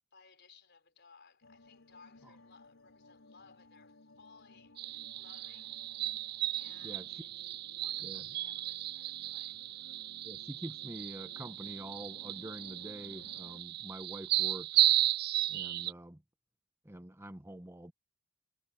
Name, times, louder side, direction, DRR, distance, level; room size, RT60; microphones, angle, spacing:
voice 1, 0.1-5.7 6.6-7.5 7.8-9.7, left 5 dB, 55° left, 4.9 m, -61 dB
sound 1, 1.4-13.6, left 2 dB, 85° left, 3.3 m, -59 dB
sound 2, 4.8-15.9, right 15 dB, 50° right, 0.4 m, -34 dB
voice 2, 6.8-7.2 8.0-8.2 10.2-14.9 15.5-16.2 16.8-17.9, right 1 dB, 10° right, 1.0 m, -46 dB
head